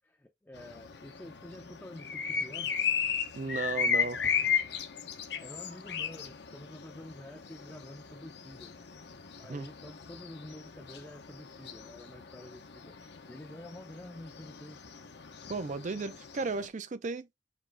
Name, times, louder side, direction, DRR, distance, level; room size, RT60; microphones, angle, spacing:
voice 1, 0.0-2.8 5.4-8.7 9.4-13.0 13.3-14.9, left 1 dB, 10° left, 0.5 m, -48 dB
sound 1, 0.5-16.7, left 7 dB, 65° left, 0.8 m, -36 dB
Thump thud, 2.8-10.1 10.5-10.9, right 2 dB, 65° right, 2.0 m, -61 dB
voice 2, 3.4-4.2 9.5-9.7 15.5-17.3, right 4 dB, 45° right, 0.5 m, -35 dB
5.1 x 3.1 x 3.3 m
head